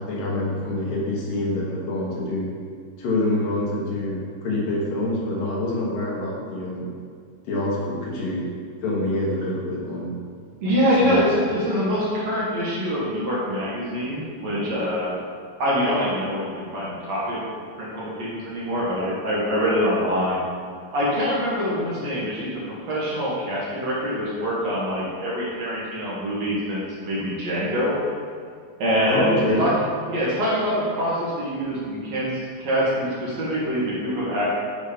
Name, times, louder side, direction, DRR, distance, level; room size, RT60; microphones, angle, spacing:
voice 1, 0.0-2.5 3.0-6.9 7.4-8.5 8.8-10.2 11.0-11.5 29.1-29.7, left 1 dB, 60° left, -4 dB, 2.6 m, -26 dB
voice 2, 10.6-15.2 15.6-20.4 20.9-28.0 28.8-29.7 30.1-34.4, equal, 55° right, -6 dB, 1.9 m, -25 dB
8.2 x 5.3 x 5.1 m, 2.1 s
omnidirectional pair, 5.2 m